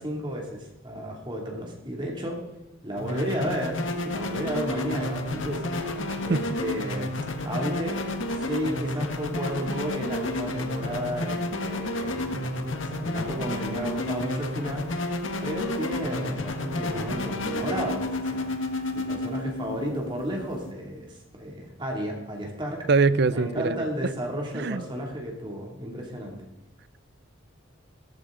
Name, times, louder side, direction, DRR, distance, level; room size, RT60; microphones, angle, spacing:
voice 1, 0.0-2.4 2.8-7.1 7.4-8.1 8.3-14.9 15.4-18.6 18.9-22.9 23.3-26.4, equal, 25° right, 2.6 m, -33 dB
sound 1, 3.0-20.7, left 1 dB, 70° left, 1.6 m, -31 dB
voice 2, 22.9-23.8 24.5-24.8, right 4 dB, 55° right, 0.5 m, -22 dB
16.5 x 14.0 x 3.8 m
head